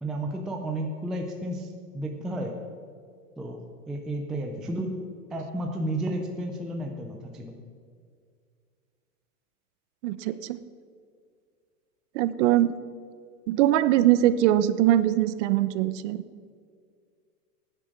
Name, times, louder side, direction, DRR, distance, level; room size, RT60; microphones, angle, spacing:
voice 1, 0.0-2.5 3.4-4.9 5.3-7.5, right 1 dB, ahead, 1 dB, 0.3 m, -32 dB
voice 2, 10.0-10.6 12.1-12.8 13.5-16.2, right 13 dB, 50° right, 14 dB, 0.9 m, -22 dB
17.0 x 10.0 x 5.9 m, 2.1 s
hypercardioid pair, 130°, 46 cm